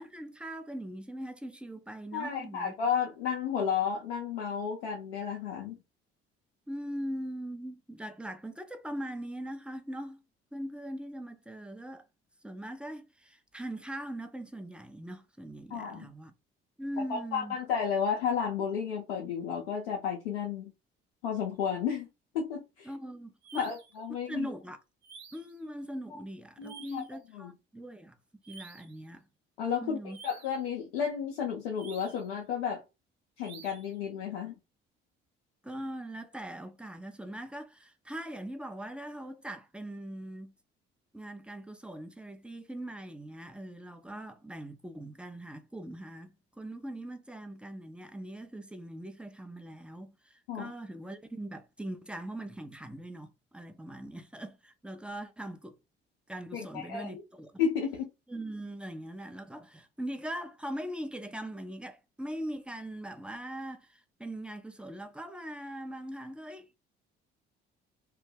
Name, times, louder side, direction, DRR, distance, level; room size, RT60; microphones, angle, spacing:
voice 1, 0.0-2.7 6.7-10.2 10.5-12.1 12.4-16.3 16.8-17.6 22.8-23.7 24.3-24.8 25.3-28.2 28.5-29.2 29.8-30.2 35.6-40.5 41.1-55.8 56.3-57.6 58.3-66.8, right 1 dB, 5° right, 0.5 m, -41 dB
voice 2, 2.1-5.8 15.7-16.1 17.1-20.7 21.2-22.1 22.3-22.9 23.5-24.5 26.1-26.2 26.6-27.0 27.3-27.5 29.6-32.8 33.4-34.5 50.5-50.7 56.5-57.2 57.6-58.1, left 7 dB, 85° left, 0.6 m, -32 dB
sound 1, 23.4-24.0 25.0-25.6 26.6-27.2 28.4-29.0 30.1-30.7 31.8-32.3 33.4-34.0, right 6 dB, 70° right, 0.8 m, -51 dB
2.2 x 2.1 x 3.3 m
hypercardioid pair, 55°, 29 cm